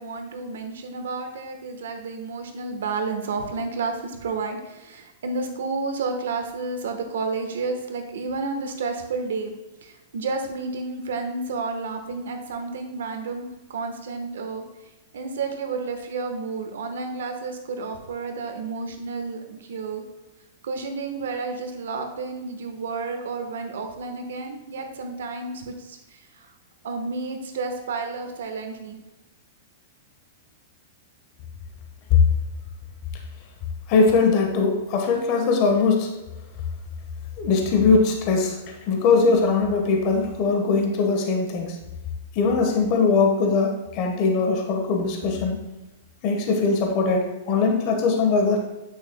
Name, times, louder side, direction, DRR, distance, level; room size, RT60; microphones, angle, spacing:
voice 1, 0.0-9.5 9.8-14.6 15.1-20.0 20.6-26.5 26.8-29.0, right 4 dB, 80° right, 5 dB, 1.1 m, -31 dB
voice 2, 33.9-36.1 37.4-38.6 38.9-41.8 42.3-45.7 46.2-48.6, left 4 dB, 45° left, 3 dB, 1.2 m, -21 dB
8.5 x 6.6 x 2.2 m, 1.0 s
hypercardioid pair, 125°, 0 cm